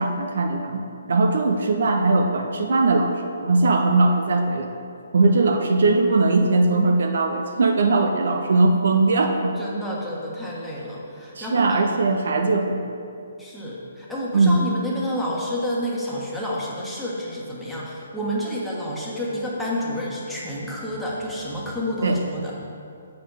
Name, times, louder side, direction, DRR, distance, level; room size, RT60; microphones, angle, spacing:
voice 1, 0.0-4.7 5.1-9.5 11.4-12.9 14.3-14.7 22.0-22.2, right 3 dB, 60° right, 4 dB, 0.6 m, -20 dB
voice 2, 9.6-11.7 13.4-22.5, equal, 5° left, -6 dB, 1.4 m, -29 dB
7.4 x 6.7 x 4.0 m, 2.5 s
figure-of-eight pair, 135°, 0 cm